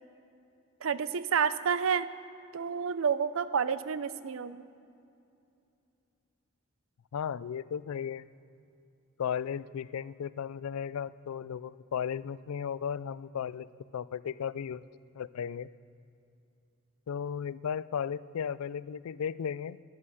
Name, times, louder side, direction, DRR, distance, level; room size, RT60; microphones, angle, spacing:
voice 1, 0.8-2.1 2.5-4.7, right 6 dB, 65° right, 15 dB, 0.5 m, -29 dB
voice 2, 7.1-8.3 9.2-14.9 15.1-15.7 17.1-19.8, left 7 dB, 85° left, 18 dB, 0.4 m, -35 dB
11.0 x 10.5 x 7.1 m, 2.6 s
head